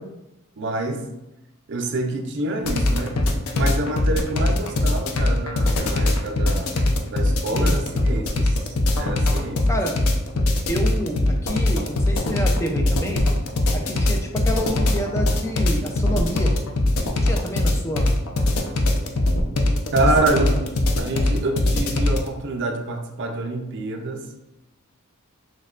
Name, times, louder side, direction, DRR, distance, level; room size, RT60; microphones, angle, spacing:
voice 1, 0.6-1.0 1.7-3.2 3.5-8.6 9.0-9.6 19.9-20.5 21.0-24.3, right 2 dB, 55° right, 3 dB, 0.5 m, -27 dB
sound 1, 2.7-22.3, left 1 dB, 70° left, 0.5 m, -20 dB
voice 2, 10.7-13.2 13.7-16.5 17.2-18.1 20.2-20.6, equal, 15° left, 2 dB, 0.4 m, -28 dB
6.3 x 2.2 x 2.5 m, 0.94 s
head